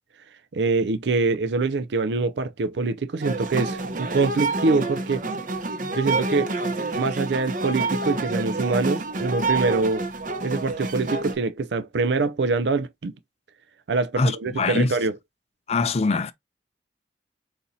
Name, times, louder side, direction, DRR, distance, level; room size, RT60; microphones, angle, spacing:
voice 1, 0.5-5.3 5.9-6.5 7.0-10.0 10.4-13.1 13.9-15.1, right 3 dB, 80° right, 0.5 m, -24 dB
sound 1, 3.2-11.3, right 2 dB, 50° right, 0.8 m, -28 dB
voice 2, 14.2-14.9 15.7-16.3, left 3 dB, 35° left, 0.4 m, -23 dB
4.2 x 4.1 x 2.6 m
head